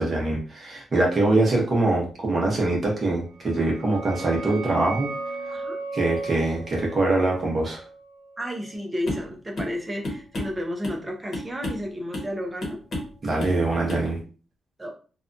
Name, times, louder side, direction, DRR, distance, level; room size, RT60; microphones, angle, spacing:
voice 1, 0.0-5.1 5.5-5.6 5.9-7.8 13.2-14.2, right 2 dB, 30° right, -2 dB, 0.8 m, -23 dB
sound 1, 3.3-8.8, right 3 dB, 85° right, 0.5 m, -36 dB
voice 2, 5.5-5.8 8.4-12.8 14.8-14.9, equal, 10° right, 2 dB, 0.5 m, -32 dB
sound 2, 9.1-9.3 9.6-9.8 10.0-11.0 11.3-11.9 12.1-12.3 12.6-13.1 13.4-13.6 13.9-14.1, left 1 dB, 35° left, 1.0 m, -32 dB
2.7 x 2.2 x 2.5 m, 0.38 s
wide cardioid pair, 175°, 0 cm